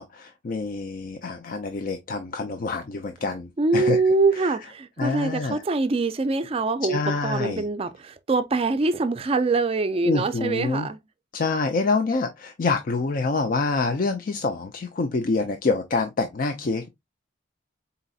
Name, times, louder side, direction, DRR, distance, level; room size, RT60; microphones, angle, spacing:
voice 1, 0.0-4.0 5.0-5.6 6.9-7.6 10.0-10.9 11.3-16.9, left 3 dB, 45° left, 0.4 m, -26 dB
voice 2, 3.6-11.0, right 3 dB, 30° right, 0.4 m, -24 dB
4.0 x 3.9 x 2.3 m
head